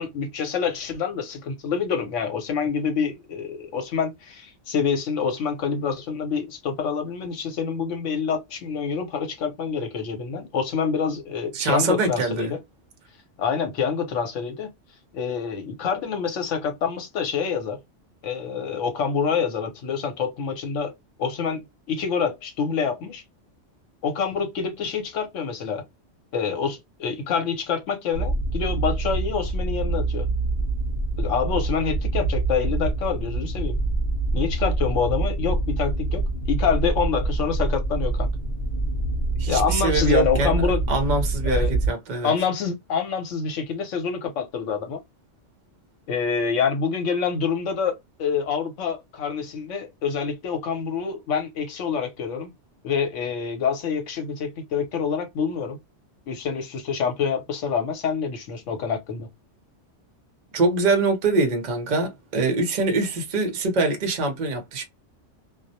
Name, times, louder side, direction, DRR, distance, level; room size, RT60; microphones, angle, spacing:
voice 1, 0.0-12.6 13.4-14.7 15.1-17.8 18.2-20.9 21.2-21.6 21.9-23.2 24.0-25.8 26.3-30.3 31.2-33.8 34.3-38.3 39.5-40.8 41.4-41.8 42.2-45.0 46.1-52.5 52.8-55.8 56.3-59.3, left 6 dB, 80° left, 1.1 m, -26 dB
voice 2, 11.5-12.5 39.4-40.6 40.9-42.3 60.5-64.8, right 3 dB, 45° right, 0.7 m, -24 dB
sound 1, 28.1-41.9, right 2 dB, 50° left, 0.7 m, -25 dB
2.4 x 2.0 x 2.7 m
omnidirectional pair, 1.3 m